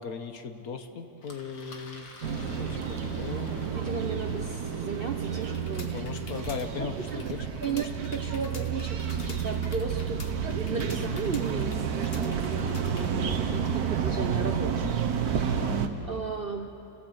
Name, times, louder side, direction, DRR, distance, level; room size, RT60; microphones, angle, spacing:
voice 1, 0.0-3.6 5.8-7.9 15.5-16.3, left 5 dB, 60° left, 7 dB, 1.5 m, -39 dB
Engine, 1.2-6.5, left 3 dB, 75° left, 2.5 m, -51 dB
sound 1, 2.2-15.9, right 7 dB, 65° right, 1.6 m, -30 dB
voice 2, 3.6-6.0 6.8-7.3 7.6-15.6 16.0-16.7, right 5 dB, 45° right, 5 dB, 0.9 m, -35 dB
sound 2, 5.4-13.2, left 4 dB, 40° left, 1.3 m, -48 dB
29.5 x 16.0 x 8.0 m, 3.0 s
omnidirectional pair, 1.8 m